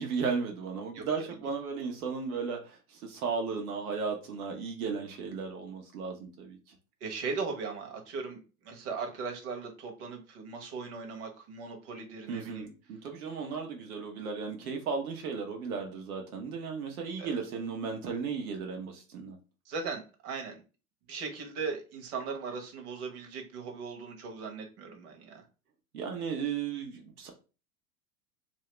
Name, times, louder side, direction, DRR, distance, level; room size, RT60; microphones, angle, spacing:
voice 1, 0.0-6.7 12.3-19.4 25.9-27.3, right 5 dB, 70° right, 2 dB, 1.0 m, -35 dB
voice 2, 7.0-12.7 17.2-17.4 19.7-20.6 21.1-25.4, right 4 dB, 50° right, 3 dB, 1.2 m, -38 dB
2.8 x 2.8 x 3.2 m, 0.33 s
hypercardioid pair, 100°, 44 cm